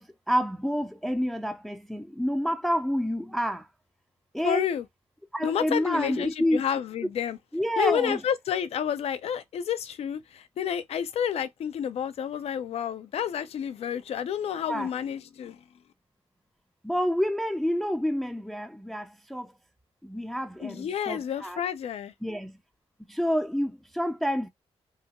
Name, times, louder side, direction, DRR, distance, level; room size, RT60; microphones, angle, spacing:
voice 1, 0.0-3.7 4.3-4.6 5.3-6.6 7.0-7.1 7.5-8.2 14.7-14.9 16.8-19.5 20.0-21.6 22.2-22.6 23.1-24.5, equal, ahead, 0.3 m, -28 dB
voice 2, 4.4-4.9 5.4-7.4 7.8-15.6 20.6-22.1, left 9 dB, 70° left, 0.4 m, -30 dB
2.8 x 2.3 x 2.8 m
wide cardioid pair, 140°, 11 cm